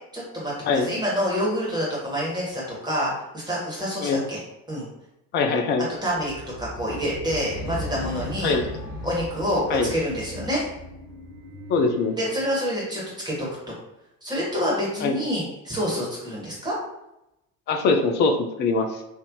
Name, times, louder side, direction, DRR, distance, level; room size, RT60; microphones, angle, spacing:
voice 1, 0.1-4.4 4.7-4.9 6.0-6.3 6.6-8.5 9.0-10.6 12.2-13.5 14.2-16.7, equal, 10° right, -6 dB, 1.5 m, -27 dB
voice 2, 5.3-5.9 8.4-8.6 9.7-9.9 11.7-12.2 15.0-15.2 17.7-19.0, left 4 dB, 25° left, 5 dB, 0.3 m, -22 dB
sound 1, 6.0-12.5, equal, 80° left, 0.7 m, -37 dB
3.2 x 2.6 x 2.6 m, 0.88 s
figure-of-eight pair, 65°, 45 cm